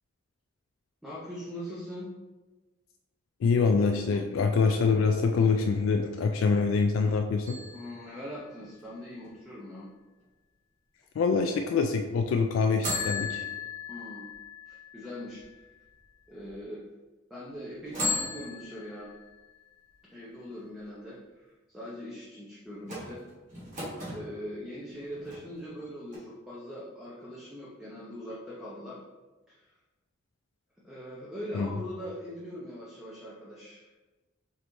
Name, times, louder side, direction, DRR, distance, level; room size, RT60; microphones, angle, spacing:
voice 1, 1.0-2.1 7.7-9.9 13.9-14.3 14.7-15.4 16.3-16.8 17.3-19.1 20.1-21.2 21.7-23.2 24.0-29.0 29.5-29.7 30.8-33.9, equal, ahead, -7 dB, 0.5 m, -41 dB
voice 2, 3.4-7.6 11.2-13.4 31.5-31.7, left 4 dB, 85° left, 5 dB, 0.3 m, -25 dB
sound 1, 7.4-9.3 12.8-15.9 16.5-16.6 17.9-19.7 22.8-24.2 24.9-25.8 26.1-26.2, left 3 dB, 40° right, 1.3 m, -37 dB
3.9 x 3.3 x 3.0 m, 1.2 s
head